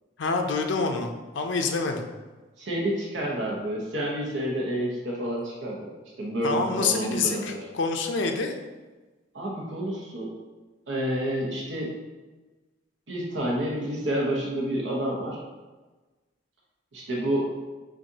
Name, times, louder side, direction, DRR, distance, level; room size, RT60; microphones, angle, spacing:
voice 1, 0.2-1.1 1.3-2.1 6.4-8.5, left 4 dB, 70° left, 4 dB, 0.5 m, -26 dB
voice 2, 2.6-5.9 6.2-7.6 9.3-10.3 10.9-11.9 13.1-15.4 16.9-17.5, right 1 dB, 75° right, -3 dB, 1.0 m, -29 dB
6.1 x 2.5 x 2.8 m, 1.2 s
head